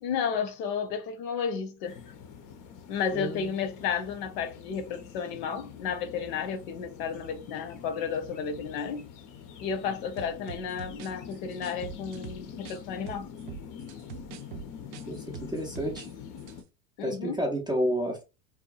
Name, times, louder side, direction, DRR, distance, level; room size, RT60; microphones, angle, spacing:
voice 1, 0.0-2.0 2.9-9.0 9.6-13.3 17.0-17.4, left 6 dB, 70° left, 0.8 m, -32 dB
sound 1, 1.8-16.6, left 7 dB, 40° left, 0.6 m, -45 dB
voice 2, 3.1-3.5 15.1-16.1 17.0-18.2, equal, 10° right, 0.4 m, -30 dB
sound 2, 10.2-12.8 13.1-16.1 16.4-16.6, right 9 dB, 80° right, 0.5 m, -43 dB
2.8 x 2.2 x 2.3 m
hypercardioid pair, 95°, 49 cm